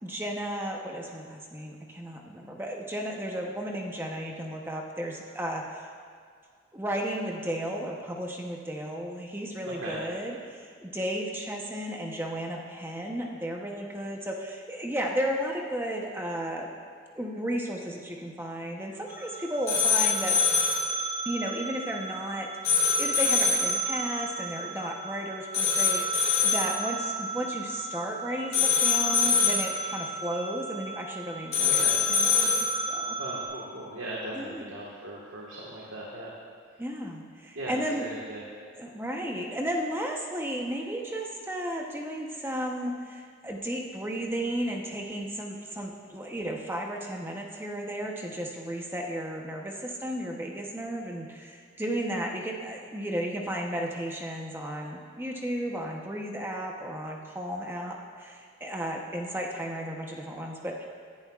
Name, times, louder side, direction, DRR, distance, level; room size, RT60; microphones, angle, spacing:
voice 1, 0.0-5.9 6.7-16.7 17.1-20.4 21.2-32.5 32.9-33.2 34.3-34.7 36.8-38.1 38.7-60.8, equal, 10° right, 0 dB, 0.8 m, -34 dB
voice 2, 9.6-10.0 31.6-32.1 33.2-36.3 37.5-38.4, right 1 dB, 85° right, -5 dB, 1.6 m, -38 dB
sound 1, 19.1-33.4, left 4 dB, 30° left, 2.5 m, -27 dB
18.5 x 10.5 x 2.4 m, 2.1 s
head